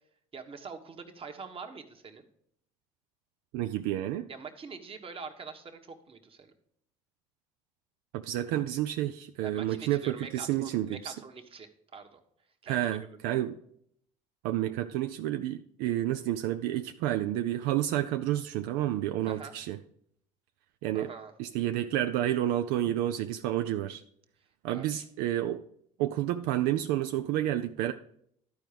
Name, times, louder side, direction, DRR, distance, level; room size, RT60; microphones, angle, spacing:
voice 1, 0.3-2.3 4.3-6.5 9.4-12.2 12.6-13.4 19.3-19.5 20.9-21.3 24.7-25.0, right 5 dB, 35° right, 5 dB, 1.3 m, -44 dB
voice 2, 3.5-4.3 8.1-11.1 12.7-13.6 14.4-19.8 20.8-21.1 21.4-24.0 24.6-25.6 26.0-27.9, right 13 dB, 75° right, 8 dB, 0.4 m, -30 dB
12.0 x 4.7 x 5.1 m, 0.69 s
supercardioid pair, 75°, 16 cm